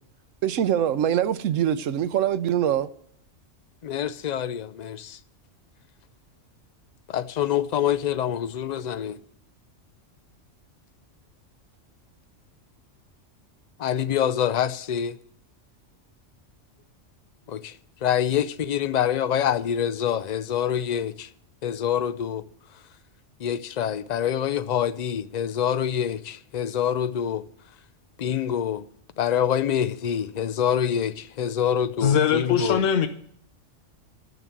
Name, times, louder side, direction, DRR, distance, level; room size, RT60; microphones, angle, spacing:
voice 1, 0.4-2.9, right 10 dB, 90° right, 1.0 m, -23 dB
voice 2, 3.8-5.2 7.1-9.2 13.8-15.2 17.5-17.6 18.0-21.3 21.6-22.4 23.4-27.4 28.2-28.8 29.2-32.8, left 9 dB, 50° left, 0.5 m, -26 dB
voice 3, 32.0-33.1, left 8 dB, 90° left, 1.2 m, -21 dB
12.0 x 6.1 x 9.2 m
omnidirectional pair, 1.3 m